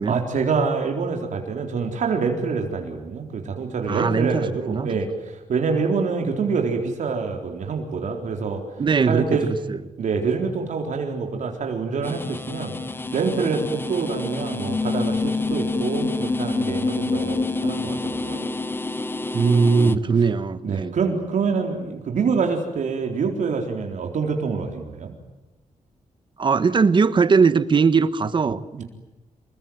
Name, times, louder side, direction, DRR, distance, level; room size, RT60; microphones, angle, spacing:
voice 1, 0.1-8.6 9.1-9.5 10.0-12.7 13.1-18.5 19.8-20.0 20.6-25.1 28.8-28.9, right 5 dB, 70° right, 2 dB, 4.0 m, -26 dB
voice 2, 3.9-5.0 8.8-9.8 19.3-20.9 26.4-28.8, right 5 dB, 35° right, 13 dB, 1.3 m, -20 dB
sound 1, 12.0-20.0, left 3 dB, 15° left, 0.8 m, -27 dB
27.5 x 22.5 x 9.4 m, 1.1 s
wide cardioid pair, 175°, 13 cm